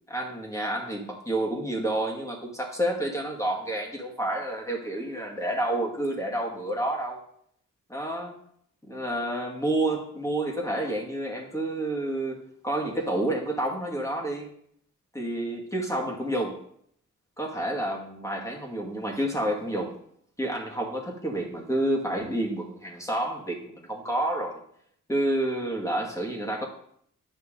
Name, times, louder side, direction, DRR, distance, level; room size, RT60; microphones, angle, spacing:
voice 1, 0.1-7.2 7.9-8.4 8.9-14.5 15.1-16.6 17.4-20.0 20.4-24.6 25.1-26.7, right 1 dB, 10° left, -2 dB, 2.2 m, -29 dB
9.3 x 5.6 x 3.9 m, 0.66 s
cardioid pair, 55°, 32 cm